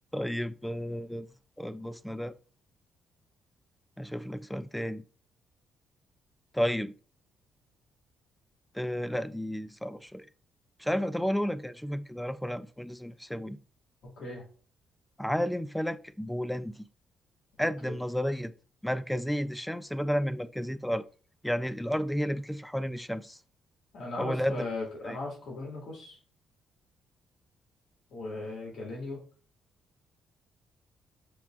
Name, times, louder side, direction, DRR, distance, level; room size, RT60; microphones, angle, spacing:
voice 1, 0.1-1.3 1.6-2.3 4.0-5.0 6.5-6.9 8.7-10.3 10.8-13.6 15.2-16.8 17.6-18.5 18.8-21.0 21.4-23.4 24.2-24.7 25.0-25.2, equal, 5° left, 0.3 m, -32 dB
voice 2, 17.6-17.9 23.9-26.2 28.1-29.2, left 2 dB, 70° left, 1.8 m, -38 dB
6.8 x 3.2 x 2.4 m
cardioid pair, 90°, 0 cm